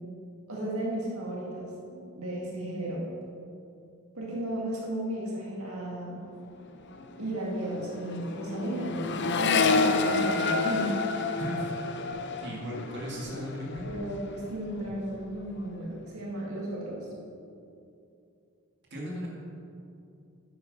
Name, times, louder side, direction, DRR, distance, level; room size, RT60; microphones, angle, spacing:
voice 1, 0.5-3.0 4.1-6.2 7.2-10.9 13.8-17.1, right 1 dB, 70° right, -4 dB, 2.0 m, -34 dB
Accelerating revving vroom, 6.4-6.6 6.9-14.4 14.7-15.4, left 4 dB, 50° left, 0.7 m, -30 dB
voice 2, 11.4-11.7 12.4-13.9 18.9-19.3, equal, 50° right, -3 dB, 2.1 m, -36 dB
9.9 x 8.8 x 5.3 m, 2.6 s
head